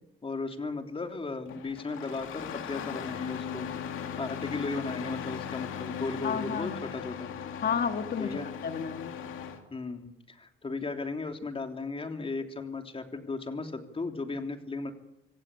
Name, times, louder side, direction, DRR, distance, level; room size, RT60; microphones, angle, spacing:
voice 1, 0.2-3.7 4.2-7.3 8.2-8.5 9.7-14.9, left 3 dB, 25° left, 5 dB, 3.3 m, -36 dB
Engine starting, 1.5-9.6, left 8 dB, 90° left, 2.6 m, -38 dB
voice 2, 6.2-6.8 7.6-9.1, left 6 dB, 50° left, 8 dB, 2.0 m, -32 dB
26.5 x 15.0 x 8.5 m, 0.86 s
cardioid pair, 90°, 20 cm